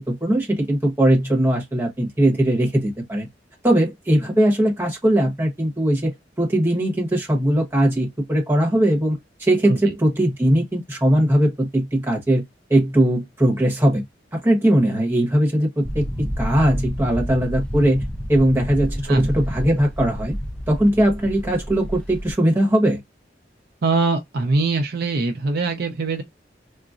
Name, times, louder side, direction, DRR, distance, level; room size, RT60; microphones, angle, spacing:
voice 1, 0.0-3.3 3.6-6.1 6.4-12.4 12.7-14.0 14.3-18.0 18.3-20.4 20.7-23.0, right 1 dB, 15° right, 1.0 m, -20 dB
sound 1, 15.8-22.3, equal, 5° left, 0.5 m, -30 dB
voice 2, 23.8-26.2, right 3 dB, 60° right, 0.5 m, -22 dB
3.8 x 2.1 x 2.4 m
head